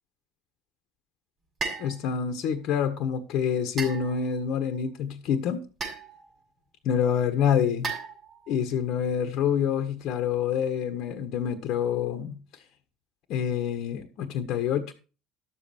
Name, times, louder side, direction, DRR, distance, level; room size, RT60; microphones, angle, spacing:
sound 1, 1.6-2.0 3.8-4.4 5.8-6.3 7.8-8.5, right 4 dB, 40° right, 6.0 m, -35 dB
voice 1, 1.8-5.6 6.8-7.9 8.5-12.4 13.3-14.9, left 8 dB, 60° left, 1.4 m, -27 dB
12.0 x 7.5 x 4.5 m
hypercardioid pair, 70°, 0 cm